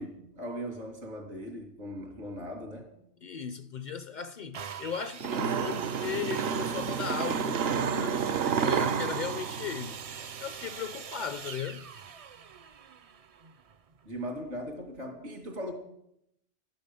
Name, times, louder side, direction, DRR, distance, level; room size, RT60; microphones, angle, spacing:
voice 1, 0.0-2.9 14.0-15.7, equal, 85° right, 2.9 m, -39 dB
voice 2, 3.2-10.0 10.4-11.9, left 7 dB, 50° left, 0.6 m, -37 dB
sound 1, 4.5-14.2 14.9-15.0, right 7 dB, 45° right, 0.4 m, -43 dB
sound 2, 5.2-10.6, right 7 dB, 65° right, 0.8 m, -30 dB
11.5 x 10.5 x 6.8 m
omnidirectional pair, 1.2 m